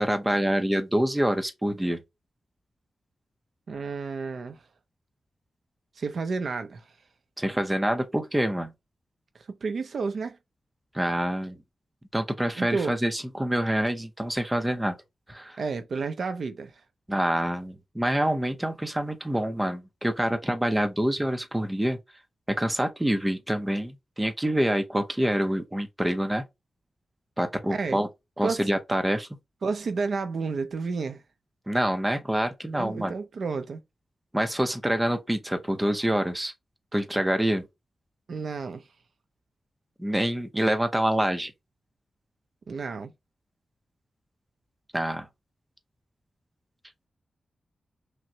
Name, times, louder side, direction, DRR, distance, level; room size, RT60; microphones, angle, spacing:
voice 1, 0.0-2.0 7.4-8.7 10.9-11.6 12.1-15.0 15.3-15.6 17.1-22.0 22.5-26.4 27.4-28.1 28.4-29.3 31.7-33.1 34.3-36.5 36.9-37.6 40.0-41.5 44.9-45.3, right 1 dB, 10° right, 0.6 m, -26 dB
voice 2, 3.7-4.6 6.0-6.8 9.5-10.4 12.6-13.0 15.6-16.7 27.7-28.0 28.4-28.7 29.6-31.2 32.7-33.8 38.3-38.8 42.7-43.1, right 4 dB, 60° right, 0.5 m, -31 dB
5.9 x 2.1 x 2.7 m
wide cardioid pair, 145°, 0 cm